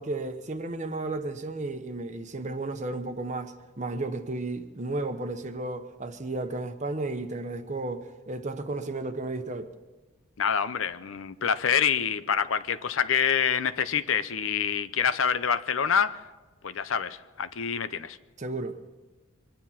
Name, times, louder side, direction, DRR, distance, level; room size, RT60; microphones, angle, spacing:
voice 1, 0.0-9.7 18.4-18.9, right 2 dB, 35° right, 1.0 m, -33 dB
voice 2, 10.4-16.2 16.6-18.2, left 7 dB, 75° left, 0.7 m, -26 dB
24.5 x 9.8 x 5.8 m
head